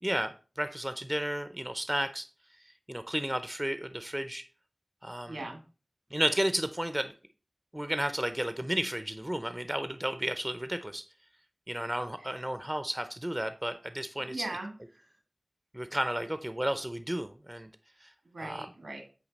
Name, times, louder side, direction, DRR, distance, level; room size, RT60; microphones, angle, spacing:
voice 1, 0.0-2.3 2.9-4.4 5.0-5.4 6.1-7.1 7.7-11.0 11.7-14.5 15.7-17.7 18.0-18.1 18.4-18.7, right 1 dB, 15° right, 10 dB, 0.6 m, -32 dB
voice 2, 5.2-5.6 12.2-12.3 14.3-15.1 18.3-19.0, right 2 dB, 90° right, 3 dB, 1.8 m, -40 dB
8.2 x 2.8 x 4.1 m, 0.35 s
wide cardioid pair, 40°, 0 cm